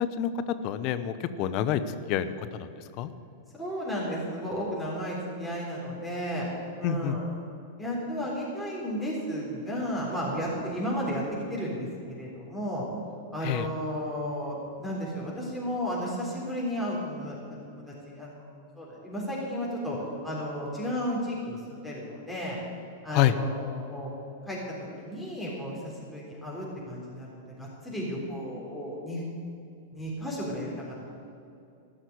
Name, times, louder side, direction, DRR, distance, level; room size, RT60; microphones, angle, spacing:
voice 1, 0.0-1.8 2.1-2.7 3.0-3.1 6.8-7.2 13.4-13.7 23.1-23.3, left 11 dB, 50° left, 11 dB, 0.8 m, -27 dB
voice 2, 3.6-6.5 6.8-7.3 7.8-11.2 11.5-11.9 12.2-12.9 13.3-17.4 17.7-20.0 20.2-22.6 23.0-24.1 24.5-24.6 25.0-29.2 29.9-31.0, equal, 5° left, -6 dB, 3.6 m, -33 dB
14.0 x 5.8 x 9.7 m, 2.6 s
hypercardioid pair, 110°, 0 cm